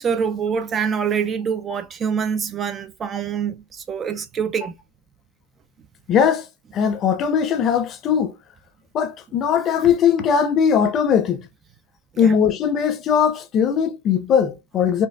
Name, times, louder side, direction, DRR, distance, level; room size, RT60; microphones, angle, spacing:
voice 1, 0.0-4.7 12.1-12.3, right 7 dB, 25° right, 0.3 m, -25 dB
voice 2, 6.1-6.4 6.7-8.3 8.9-11.4 12.2-15.1, left 7 dB, 30° left, 0.7 m, -19 dB
4.5 x 2.3 x 2.3 m
hypercardioid pair, 125°, 0 cm